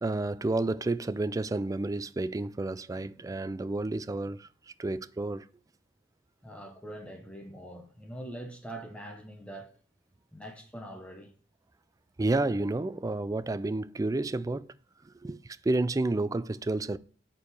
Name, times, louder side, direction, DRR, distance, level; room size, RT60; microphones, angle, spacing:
voice 1, 0.0-4.5 4.8-5.5 12.2-14.7 15.0-17.0, right 2 dB, 15° right, 0.3 m, -30 dB
voice 2, 6.4-9.7 10.3-11.3, right 1 dB, 5° left, 0.9 m, -43 dB
6.9 x 4.7 x 6.8 m
head